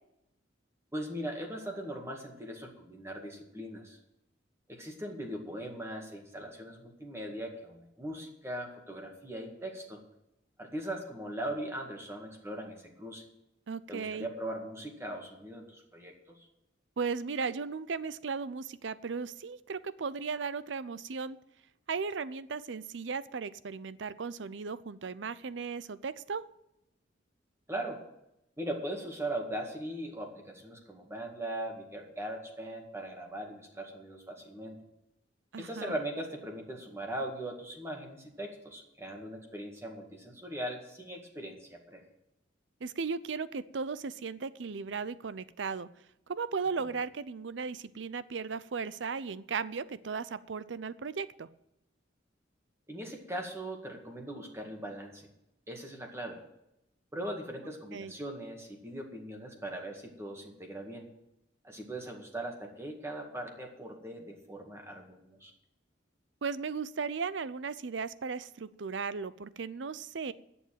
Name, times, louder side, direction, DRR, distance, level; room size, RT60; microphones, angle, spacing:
voice 1, 0.9-4.0 4.7-10.0 10.6-13.2 13.9-16.4 27.7-28.0 28.6-34.8 35.6-42.0 52.9-55.3 55.7-56.4 57.1-61.1 61.6-65.5, right 1 dB, 15° right, 1 dB, 2.0 m, -40 dB
voice 2, 13.7-14.3 17.0-21.4 21.9-26.4 35.5-35.9 42.8-45.9 46.3-51.5 57.9-58.1 66.4-70.3, right 5 dB, 70° right, 16 dB, 0.6 m, -36 dB
11.0 x 7.2 x 9.1 m, 0.82 s
head